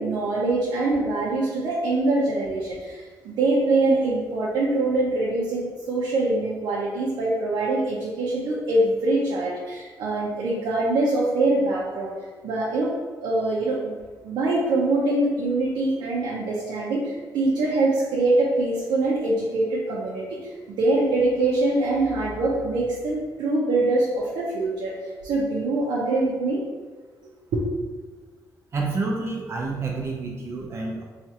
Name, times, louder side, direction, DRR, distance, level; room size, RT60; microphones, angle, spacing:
voice 1, 0.0-12.1 12.4-12.9 13.2-13.9 14.2-26.6 27.5-27.6, right 2 dB, 90° right, -5 dB, 0.6 m, -24 dB
voice 2, 28.7-31.0, right 3 dB, 35° right, -1 dB, 0.6 m, -28 dB
4.3 x 2.4 x 2.8 m, 1.4 s
cardioid pair, 165°, 7 cm